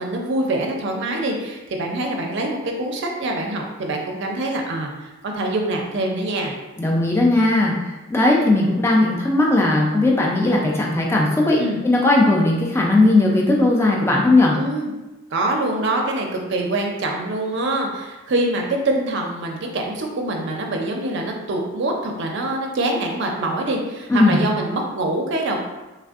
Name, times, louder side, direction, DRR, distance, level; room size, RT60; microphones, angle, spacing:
voice 1, 0.0-6.5 11.6-11.8 14.5-14.9 15.3-25.6, right 2 dB, 55° right, 1 dB, 0.4 m, -24 dB
voice 2, 6.8-14.5 24.1-24.4, left 2 dB, 10° left, -2 dB, 0.3 m, -17 dB
3.2 x 2.5 x 2.4 m, 1.1 s
head